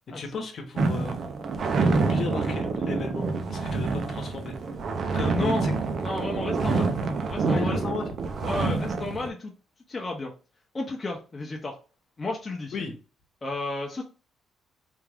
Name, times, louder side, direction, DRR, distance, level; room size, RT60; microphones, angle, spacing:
voice 1, 0.1-1.2 1.9-4.5 5.1-5.7 6.7-6.9 7.5-8.0 8.5-8.6 12.7-12.9, left 4 dB, 55° left, 4 dB, 1.0 m, -35 dB
sound 1, 0.8-9.3, right 4 dB, 55° right, 0.5 m, -27 dB
voice 2, 5.3-5.7 6.0-6.9 7.3-7.8 8.4-9.5 9.9-10.3 10.7-11.8 12.2-12.7 13.4-14.0, left 2 dB, 30° left, 0 dB, 0.7 m, -32 dB
3.5 x 2.3 x 3.4 m, 0.34 s
cardioid pair, 105°, 0 cm